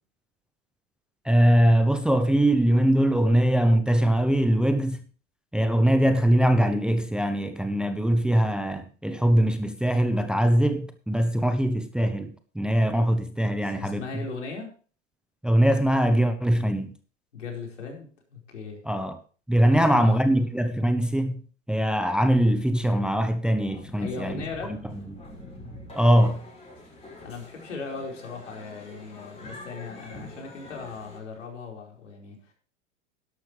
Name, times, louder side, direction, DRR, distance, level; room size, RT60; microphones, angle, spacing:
voice 1, 1.2-5.0 5.5-14.0 15.4-16.9 18.9-19.2 19.5-21.4 21.7-24.4 26.0-26.4, right 1 dB, ahead, 0.8 m, -22 dB
voice 2, 13.6-14.7 17.3-18.8 19.7-20.2 24.0-24.8 27.2-32.5, left 4 dB, 80° left, 4.7 m, -38 dB
sound 1, 23.6-31.5, left 2 dB, 15° left, 6.2 m, -45 dB
12.0 x 12.0 x 3.2 m
hypercardioid pair, 105°, 37 cm